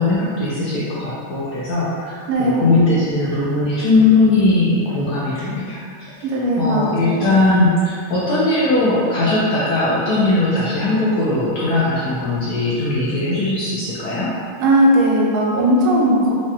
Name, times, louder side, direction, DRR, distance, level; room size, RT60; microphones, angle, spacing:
voice 1, 0.0-5.9 6.6-14.3, left 2 dB, 85° left, -8 dB, 0.8 m, -19 dB
voice 2, 2.3-2.7 6.2-7.4 14.6-16.3, right 1 dB, 90° right, -3 dB, 0.8 m, -17 dB
4.8 x 2.1 x 2.7 m, 2.1 s
omnidirectional pair, 2.3 m